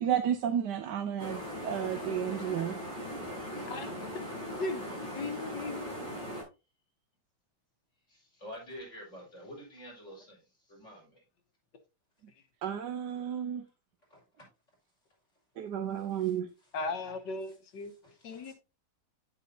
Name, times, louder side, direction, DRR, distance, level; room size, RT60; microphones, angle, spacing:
voice 1, 0.0-2.8 12.6-13.6 15.6-16.5, right 9 dB, 75° right, 1.3 m, -32 dB
sound 1, 1.2-6.4, equal, 25° right, 5.7 m, -39 dB
voice 2, 4.5-4.8 5.2-6.0 16.7-17.9 18.2-18.5, left 3 dB, 80° left, 1.8 m, -37 dB
voice 3, 8.1-10.4 10.7-11.2 14.1-14.5 16.1-16.3 17.0-17.6 18.0-18.5, equal, 40° left, 5.1 m, -50 dB
9.3 x 8.3 x 2.7 m
omnidirectional pair, 1.9 m